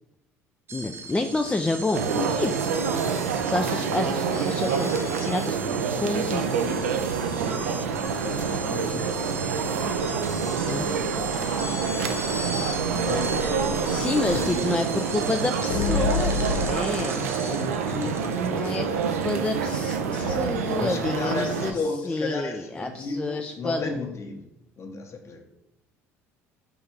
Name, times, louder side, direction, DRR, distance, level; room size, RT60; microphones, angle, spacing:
voice 1, 0.7-2.6 3.4-5.6 6.0-6.6 10.7-10.9 13.8-21.8 22.1-24.0, left 2 dB, 15° left, 5 dB, 0.3 m, -29 dB
sound 1, 0.7-19.8, right 3 dB, 35° right, 0.7 m, -38 dB
sound 2, 1.9-21.7, right 6 dB, 85° right, 0.4 m, -27 dB
sound 3, 6.5-15.2 15.6-16.7, left 6 dB, 80° left, 1.0 m, -34 dB
voice 2, 7.3-9.3 9.8-14.0 14.3-14.5 17.9-18.9 19.9-20.5 20.7-24.5 24.8-25.4, left 3 dB, 40° left, 4 dB, 0.9 m, -36 dB
3.7 x 2.7 x 4.5 m, 0.84 s
hypercardioid pair, 65°, 8 cm